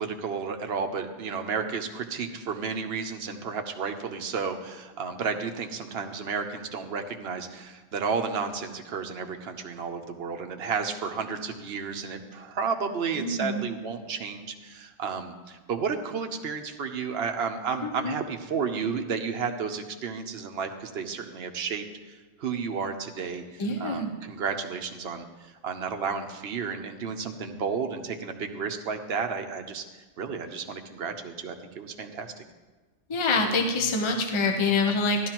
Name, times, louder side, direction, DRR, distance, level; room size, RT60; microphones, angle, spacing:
voice 1, 0.0-32.4, right 5 dB, 65° right, 5 dB, 1.0 m, -32 dB
voice 2, 13.2-13.7 17.8-18.1 23.6-24.1 33.1-35.3, left 3 dB, 30° left, 3 dB, 0.8 m, -26 dB
14.0 x 11.5 x 3.0 m, 1.3 s
omnidirectional pair, 1.2 m